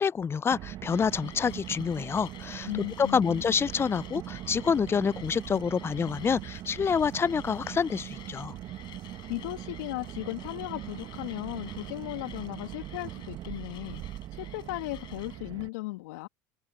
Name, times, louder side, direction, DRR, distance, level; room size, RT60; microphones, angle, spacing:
voice 1, 0.0-8.5, left 6 dB, 25° left, 0.6 m, -27 dB
Car, 0.5-15.7, right 13 dB, 50° right, 1.3 m, -41 dB
Mechanisms, 0.9-15.4, left 14 dB, 50° left, 6.3 m, -52 dB
voice 2, 2.7-3.4 9.3-14.0 14.3-16.3, left 21 dB, 70° left, 2.4 m, -36 dB
hypercardioid pair, 75°, 10 cm